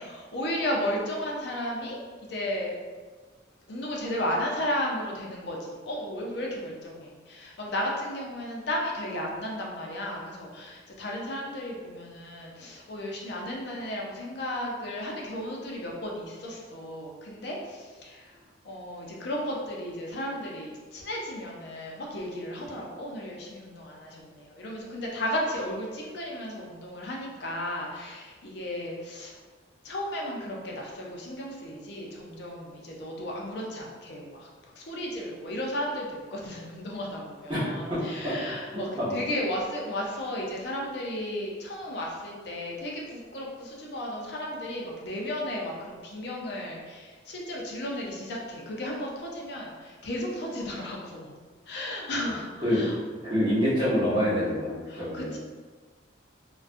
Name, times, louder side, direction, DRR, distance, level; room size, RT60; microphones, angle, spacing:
voice 1, 0.0-2.0 2.3-2.8 3.7-18.4 18.6-29.4 29.8-34.5 34.7-51.3 51.6-53.0 54.9-55.4, left 1 dB, 55° left, -2 dB, 0.5 m, -34 dB
voice 2, 37.9-38.4 38.7-39.1 52.1-52.2 52.6-52.8 53.2-55.4, equal, 25° right, -10 dB, 0.9 m, -27 dB
2.4 x 2.2 x 2.5 m, 1.4 s
head